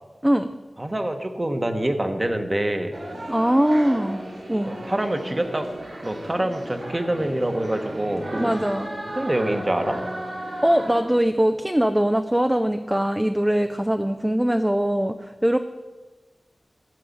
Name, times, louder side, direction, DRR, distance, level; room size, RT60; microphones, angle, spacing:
voice 1, 0.8-2.9 4.6-5.7 6.0-8.6 9.2-10.0, right 1 dB, 25° right, 6 dB, 1.1 m, -25 dB
sound 1, 2.9-11.0, right 1 dB, 65° right, 3.1 m, -35 dB
voice 2, 3.3-4.2 4.5-4.7 8.4-8.9 10.6-15.6, equal, 10° right, 8 dB, 0.4 m, -21 dB
12.0 x 4.8 x 8.4 m, 1.3 s
wide cardioid pair, 70°, 0 cm